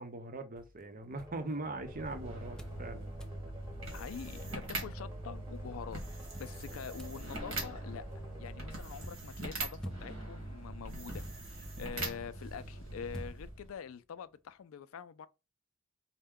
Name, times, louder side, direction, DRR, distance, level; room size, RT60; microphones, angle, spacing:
voice 1, 0.0-3.1, right 2 dB, 40° right, 0.7 m, -41 dB
sound 1, 0.6-2.1 2.6-2.8 3.2-3.4 4.0-4.1 4.3-5.4 6.3-13.9, equal, 5° left, 0.4 m, -50 dB
sound 2, 1.1-9.8, left 1 dB, 15° right, 1.0 m, -53 dB
sound 3, 1.8-13.7, right 2 dB, 90° right, 1.5 m, -42 dB
voice 2, 3.9-6.0 6.3-8.1 8.4-15.3, left 7 dB, 80° left, 0.4 m, -45 dB
4.4 x 2.2 x 3.6 m
head